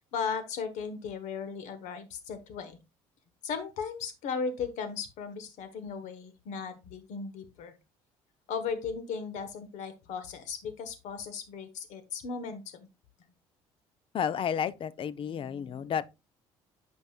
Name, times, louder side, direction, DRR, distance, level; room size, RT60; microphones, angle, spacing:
voice 1, 0.1-2.8 3.4-7.7 8.5-12.9, left 5 dB, 70° left, 1.3 m, -36 dB
voice 2, 14.1-16.1, left 8 dB, 45° left, 0.5 m, -31 dB
7.6 x 5.2 x 2.4 m
supercardioid pair, 75°, 13 cm